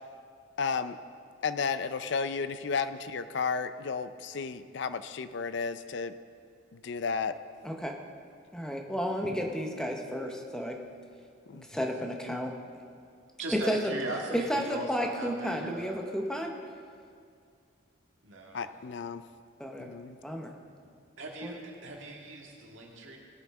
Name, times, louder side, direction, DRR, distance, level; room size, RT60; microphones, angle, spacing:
voice 1, 0.6-1.0 1.4-6.1 6.8-7.3 11.5-11.7 18.5-19.2 19.8-20.2, left 5 dB, 60° left, 12 dB, 0.4 m, -33 dB
voice 2, 8.5-10.8 11.7-12.5 13.5-13.9 14.3-16.5 19.6-19.9 20.2-20.5 21.4-21.5, equal, 5° left, 2 dB, 0.7 m, -32 dB
voice 3, 13.4-16.0 18.2-18.7 21.2-23.2, right 2 dB, 70° right, 0 dB, 1.8 m, -39 dB
18.5 x 8.9 x 3.6 m, 2.3 s
head